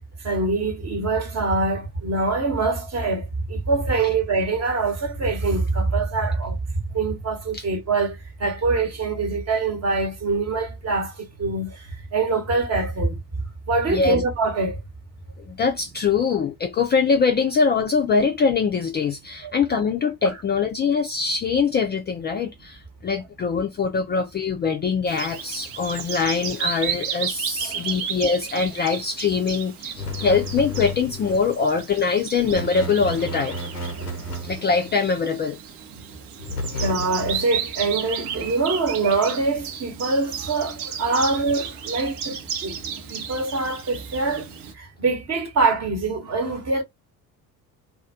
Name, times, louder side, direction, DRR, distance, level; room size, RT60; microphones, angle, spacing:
voice 1, 0.2-6.6 6.9-11.1 11.4-11.7 12.1-13.2 13.7-14.8 19.4-19.5 27.6-27.9 36.8-42.8 43.1-44.5 44.8-46.8, right 3 dB, 35° right, 1.0 m, -24 dB
voice 2, 15.5-33.5 34.4-35.6, left 5 dB, 25° left, 0.4 m, -23 dB
Bird vocalization bird call bird song, 25.1-44.7, right 8 dB, 60° right, 0.7 m, -34 dB
sound 1, 30.0-31.5 32.4-35.0 36.4-37.6, left 1 dB, 90° left, 0.7 m, -32 dB
2.3 x 2.2 x 2.6 m
figure-of-eight pair, 55°, 45 cm